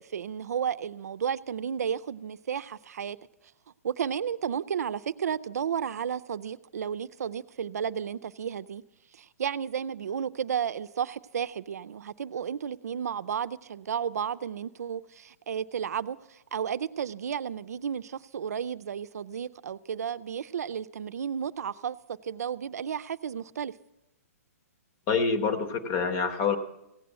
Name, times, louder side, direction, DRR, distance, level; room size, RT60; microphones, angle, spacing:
voice 1, 0.0-3.2 3.8-8.8 9.1-22.0 22.2-23.7, right 8 dB, 80° right, 14 dB, 0.5 m, -33 dB
voice 2, 25.1-26.6, left 5 dB, 30° left, 9 dB, 1.0 m, -26 dB
16.5 x 7.6 x 8.0 m, 0.91 s
hypercardioid pair, 160°, 8 cm